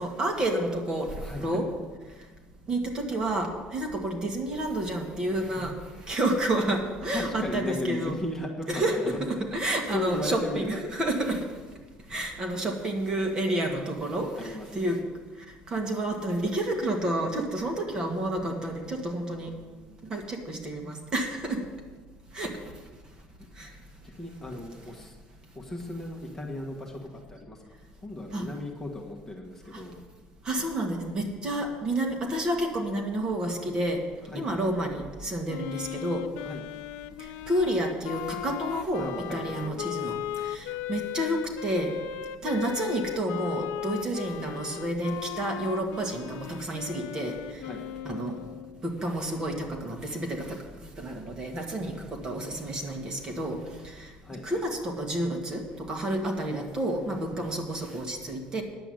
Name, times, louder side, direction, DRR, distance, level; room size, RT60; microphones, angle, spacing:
voice 1, 0.0-1.7 2.7-5.7 6.1-8.2 8.7-11.5 12.1-15.0 15.7-19.5 20.1-21.6 22.3-22.6 23.6-23.7 28.3-28.5 29.7-29.8 30.5-34.0 34.3-36.3 37.5-41.9 42.4-47.6 48.1-48.4 48.8-50.6 51.0-53.6 53.8-54.1 54.4-58.6, right 1 dB, 25° right, 2 dB, 1.6 m, -30 dB
voice 2, 1.2-1.7 5.4-5.7 7.1-10.8 12.3-12.6 14.1-15.0 24.0-25.2 25.5-27.6 28.0-30.0 34.3-34.7 36.4-36.6 39.0-40.1 47.6-47.9 54.2-54.7, left 1 dB, 15° left, 0 dB, 1.3 m, -37 dB
Wind instrument woodwind instrument, 35.5-48.9, left 11 dB, 85° left, 0.5 m, -37 dB
10.0 x 8.0 x 7.7 m, 1.3 s
cardioid pair, 155°, 3 cm